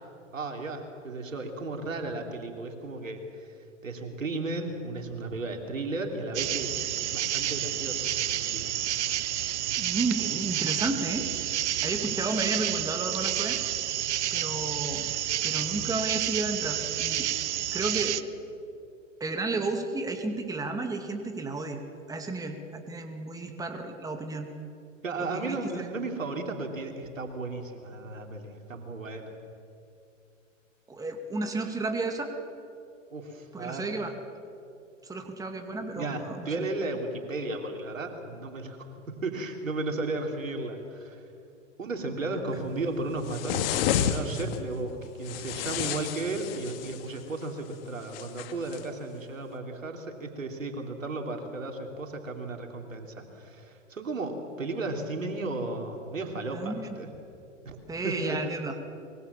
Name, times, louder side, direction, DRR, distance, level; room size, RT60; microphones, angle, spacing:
voice 1, 0.3-3.5 3.8-6.7 7.0-8.7 25.0-29.3 33.1-33.9 35.9-41.2 41.8-57.1 57.7-57.8 58.0-58.4, right 2 dB, 85° right, 3 dB, 3.5 m, -34 dB
sound 1, 6.3-18.2, right 12 dB, 60° right, 1.1 m, -30 dB
voice 2, 9.8-11.3 11.8-13.6 14.3-15.1 15.4-17.3 17.7-18.2 19.2-21.8 22.1-24.5 25.2-25.9 30.9-32.3 33.5-34.1 35.0-36.7 56.5-56.9 57.9-58.7, right 3 dB, 10° right, 5 dB, 2.2 m, -32 dB
sound 2, 43.3-44.6 45.2-47.1 48.1-48.8, left 9 dB, 45° left, 2.1 m, -30 dB
24.5 x 23.0 x 7.1 m, 2.6 s
hypercardioid pair, 115°, 38 cm